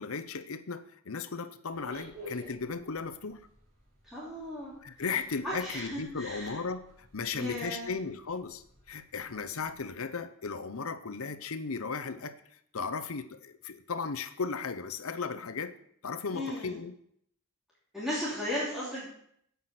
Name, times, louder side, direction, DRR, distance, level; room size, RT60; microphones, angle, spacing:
voice 1, 0.0-3.4 4.8-12.3 12.7-15.7 16.0-16.9, left 5 dB, 70° left, 10 dB, 0.8 m, -36 dB
sound 1, 1.7-9.8, left 1 dB, 40° right, 4.4 m, -53 dB
voice 2, 4.0-4.7 5.4-6.6 7.3-7.9 16.3-16.8 17.9-19.1, equal, ahead, -9 dB, 3.0 m, -35 dB
9.5 x 8.2 x 5.9 m, 0.69 s
head